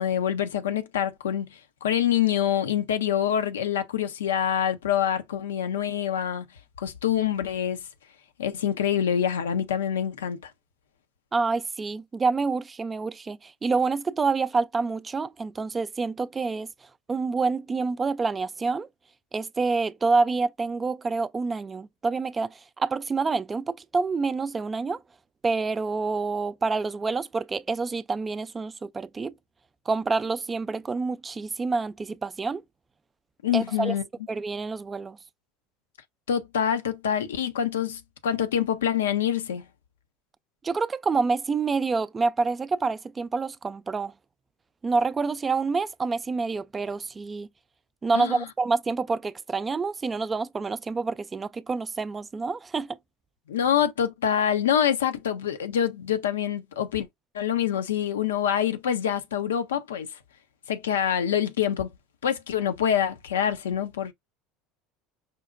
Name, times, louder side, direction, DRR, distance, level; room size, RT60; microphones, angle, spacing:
voice 1, 0.0-6.5 6.8-7.8 8.4-10.5 33.4-34.0 36.3-39.6 48.1-48.4 53.5-57.1 57.3-60.1 60.7-61.9 62.2-64.1, left 9 dB, 80° left, 0.5 m, -26 dB
voice 2, 11.3-16.7 17.1-18.9 19.3-25.0 25.4-29.3 29.9-32.6 33.5-34.0 34.3-35.2 40.6-44.1 44.8-47.5 48.0-53.0, right 4 dB, 25° right, 0.3 m, -27 dB
5.0 x 2.1 x 2.5 m
hypercardioid pair, 75°, 0 cm